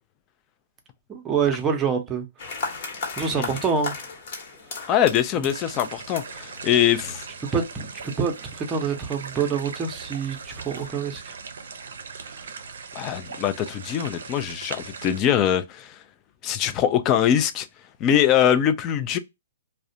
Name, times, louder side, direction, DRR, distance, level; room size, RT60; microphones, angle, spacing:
voice 1, 1.1-2.3 2.6-2.7 3.2-3.9 7.5-11.4 12.1-12.5, right 6 dB, 20° right, 0.6 m, -26 dB
sound 1, 2.4-10.9, left 4 dB, 55° left, 1.0 m, -38 dB
voice 2, 4.9-7.3 12.9-16.0 16.4-17.7 18.0-19.2, left 10 dB, 30° left, 0.4 m, -22 dB
sound 2, 5.5-15.2, right 5 dB, 75° right, 0.4 m, -39 dB
2.4 x 2.1 x 2.7 m
hypercardioid pair, 135°, 0 cm